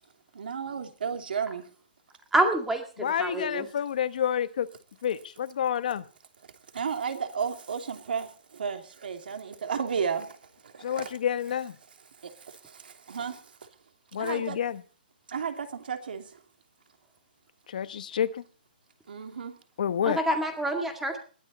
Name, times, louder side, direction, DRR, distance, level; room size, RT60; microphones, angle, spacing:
voice 1, 0.3-1.6 6.7-10.4 10.6-11.1 12.2-13.4 14.2-14.6 15.3-16.3 19.1-19.5, right 6 dB, 75° right, 6 dB, 2.8 m, -33 dB
voice 2, 2.3-2.8 3.2-3.7 20.1-21.2, right 1 dB, 5° right, 4 dB, 2.0 m, -26 dB
voice 3, 3.0-4.7 5.0-6.0 10.8-11.8 14.1-14.8 17.7-18.4 19.8-20.2, left 9 dB, 55° left, 12 dB, 1.1 m, -29 dB
21.0 x 12.5 x 4.2 m, 0.41 s
hypercardioid pair, 170°, 5 cm